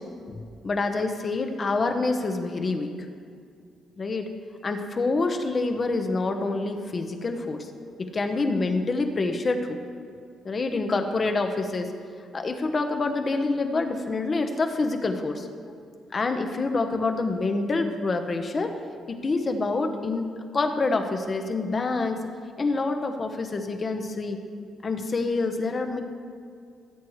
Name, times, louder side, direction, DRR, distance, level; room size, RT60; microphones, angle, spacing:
voice 1, 0.3-2.9 4.0-4.3 4.6-7.7 8.0-9.8 10.4-11.9 12.3-15.5 16.1-18.7 19.1-22.2 22.6-24.4 24.8-26.0, left 3 dB, 35° left, 6 dB, 1.0 m, -27 dB
16.5 x 8.2 x 3.2 m, 2.3 s
cardioid pair, 90°, 0 cm